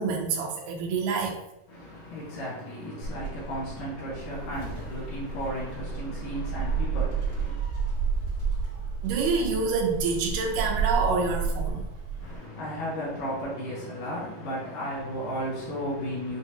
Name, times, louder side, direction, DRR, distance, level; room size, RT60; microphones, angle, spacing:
voice 1, 0.0-1.4 9.0-11.9, right 4 dB, 80° right, 2.4 m, -27 dB
voice 2, 1.7-7.6 12.2-16.4, equal, 75° left, 2.6 m, -34 dB
Gull seagull, 3.0-12.4, right 5 dB, 55° right, 1.0 m, -31 dB
7.0 x 2.5 x 2.7 m
omnidirectional pair, 3.9 m